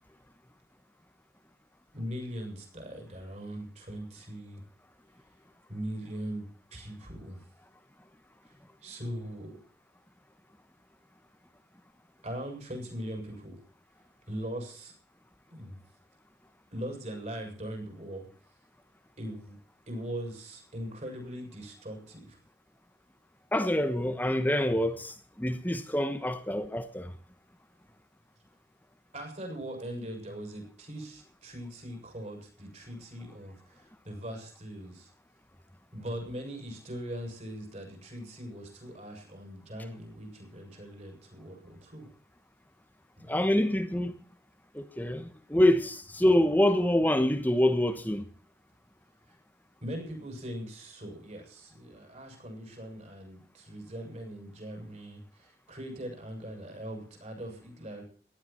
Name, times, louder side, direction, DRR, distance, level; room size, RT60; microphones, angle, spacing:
voice 1, 1.9-4.6 5.7-7.4 8.8-9.6 12.2-13.6 14.3-14.9 15.5-15.8 16.7-18.3 19.2-19.6 19.9-22.4 29.1-35.1 35.9-42.1 43.2-43.4 49.3-49.4 49.8-58.0, equal, 40° right, 7.4 m, -40 dB
voice 2, 23.5-27.2 43.3-44.2 44.7-48.3, left 1 dB, 10° left, 1.1 m, -26 dB
17.5 x 13.0 x 4.5 m
head